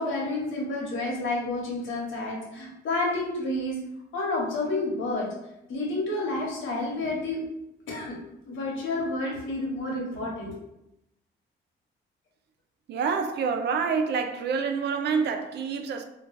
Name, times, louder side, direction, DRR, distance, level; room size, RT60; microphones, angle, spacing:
voice 1, 0.0-3.8 4.1-5.3 5.7-7.4 7.9-8.2 8.5-10.5, left 2 dB, 80° left, 1.0 m, -30 dB
voice 2, 12.9-16.0, right 5 dB, 60° right, 0.4 m, -27 dB
2.3 x 2.2 x 3.9 m
cardioid pair, 90°, 20 cm